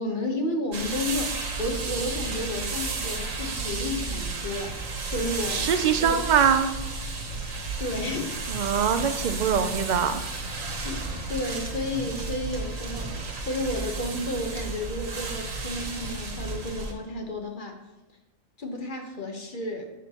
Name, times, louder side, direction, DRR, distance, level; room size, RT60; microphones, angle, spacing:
voice 1, 0.0-5.7 6.0-6.2 7.8-8.4 10.8-13.1 13.5-17.8 18.6-19.9, left 1 dB, 40° left, 2 dB, 1.2 m, -32 dB
sound 1, 0.7-16.9, right 3 dB, 85° right, 1.5 m, -33 dB
voice 2, 5.5-6.7 8.5-10.2, right 7 dB, 70° right, 8 dB, 0.4 m, -23 dB
11.0 x 7.4 x 2.9 m, 1.0 s
omnidirectional pair, 1.3 m